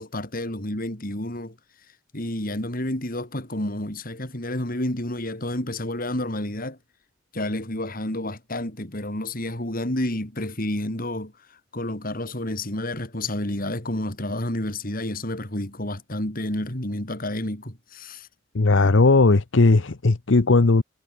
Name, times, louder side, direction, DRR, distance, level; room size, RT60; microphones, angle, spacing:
voice 1, 0.0-1.6 2.1-6.8 7.3-11.3 11.7-18.3, left 1 dB, 50° left, 4.5 m, -30 dB
voice 2, 18.5-20.8, left 3 dB, 75° left, 0.9 m, -17 dB
head